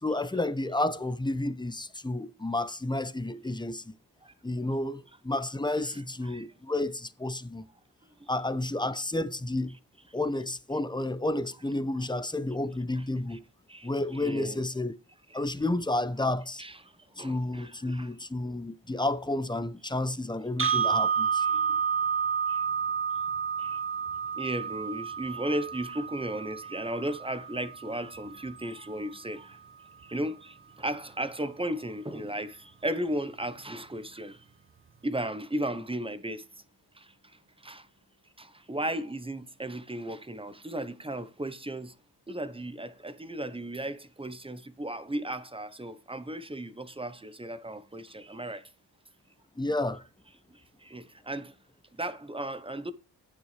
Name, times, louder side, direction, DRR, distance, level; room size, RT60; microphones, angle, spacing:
voice 1, 0.0-3.9 4.4-7.7 8.3-9.8 10.1-13.4 13.8-14.9 15.3-16.6 17.2-21.5 49.6-50.0, left 2 dB, 10° left, 0.8 m, -31 dB
voice 2, 4.2-4.7 5.8-6.5 8.2-8.3 12.9-13.0 13.3-13.4 13.7-14.6 15.3-15.4 16.6-18.1 21.4-21.8 22.5-22.7 23.6-23.8 24.3-29.6 30.0-34.5 35.0-36.6 36.9-37.9 38.4-41.9 42.3-48.7 50.5-51.6 51.9-52.9, right 1 dB, 15° right, 1.0 m, -36 dB
sound 1, 20.6-28.6, right 6 dB, 30° right, 0.6 m, -30 dB
11.0 x 9.5 x 3.3 m
wide cardioid pair, 105°, 42 cm